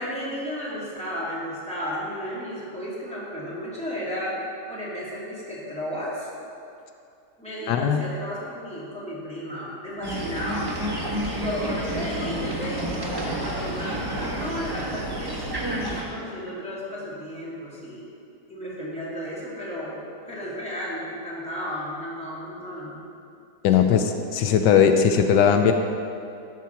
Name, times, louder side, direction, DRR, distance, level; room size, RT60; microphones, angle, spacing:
voice 1, 0.0-4.4 4.7-6.3 7.4-10.7 11.2-18.1 18.5-20.0 20.3-23.0 23.7-23.8, equal, 5° left, -9 dB, 2.5 m, -33 dB
voice 2, 7.7-8.0 23.6-25.7, left 7 dB, 85° left, 6 dB, 1.2 m, -19 dB
sound 1, 10.0-16.0, right 1 dB, 15° right, 1.0 m, -30 dB
13.0 x 4.7 x 5.7 m, 2.6 s
omnidirectional pair, 1.8 m